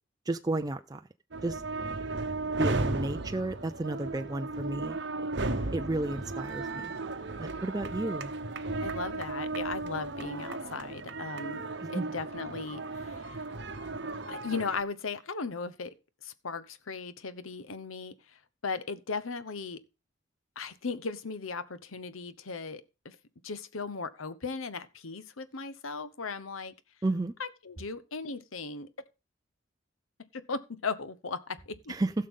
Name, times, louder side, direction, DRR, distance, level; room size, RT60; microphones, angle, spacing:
voice 1, 0.3-1.0 1.4-1.6 2.6-5.0 5.7-6.9 7.4-8.3 11.8-12.1 27.0-27.3 31.9-32.1, right 2 dB, 20° right, 0.4 m, -32 dB
sound 1, 1.3-14.8, right 3 dB, 60° right, 1.0 m, -35 dB
voice 2, 8.8-13.5 14.3-15.9 16.2-19.8 20.6-23.2 23.4-26.7 27.4-28.9 30.3-31.9, left 4 dB, 90° left, 1.0 m, -37 dB
16.0 x 6.6 x 3.7 m
head